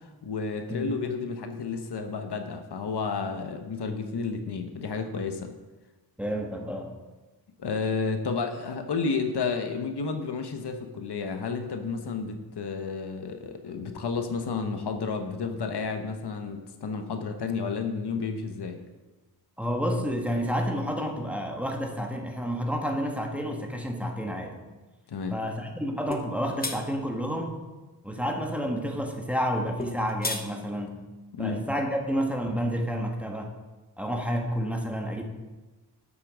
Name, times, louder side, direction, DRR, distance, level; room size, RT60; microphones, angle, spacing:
voice 1, 0.2-5.5 7.6-18.8 25.1-25.4 31.3-31.6, left 4 dB, 75° left, 6 dB, 1.1 m, -31 dB
voice 2, 6.2-6.9 19.6-24.6 25.3-27.6 28.0-31.0 31.4-33.5 34.0-35.2, equal, 5° right, 1 dB, 1.4 m, -30 dB
sound 1, 26.1-26.3 26.6-26.8 29.8-30.5, left 3 dB, 20° left, 0.9 m, -31 dB
8.3 x 7.4 x 6.2 m, 1.2 s
wide cardioid pair, 85°, 40 cm